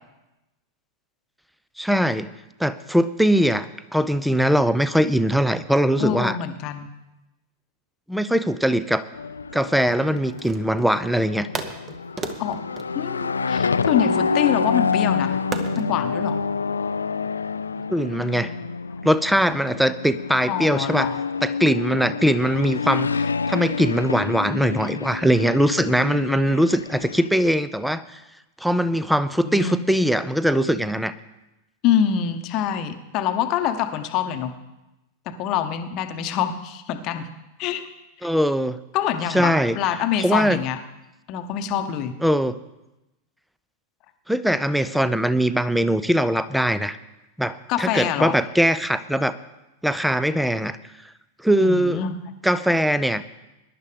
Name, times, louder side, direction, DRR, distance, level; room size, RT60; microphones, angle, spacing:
voice 1, 1.8-2.3 2.6-6.4 8.1-9.0 9.5-11.5 17.9-18.5 19.0-21.1 21.4-28.2 28.6-31.1 38.2-38.8 39.3-39.8 40.2-40.6 42.2-42.5 44.3-47.0 47.4-49.3 49.8-50.8 51.4-52.0 52.4-53.2, equal, ahead, 14 dB, 0.6 m, -21 dB
voice 2, 6.0-6.9 12.4-12.6 12.9-15.4 15.8-16.4 20.5-21.2 29.4-29.8 31.8-34.5 35.3-37.3 37.6-37.8 38.9-40.8 41.3-42.1 47.7-48.3 51.6-52.2, left 9 dB, 40° left, 8 dB, 1.0 m, -25 dB
sound 1, 9.1-27.3, left 5 dB, 75° left, 0.3 m, -27 dB
sound 2, 9.8-11.0 11.5-14.0 15.5-15.9, right 4 dB, 20° right, 1.1 m, -35 dB
21.5 x 11.0 x 3.4 m, 0.98 s
figure-of-eight pair, 90°, 0 cm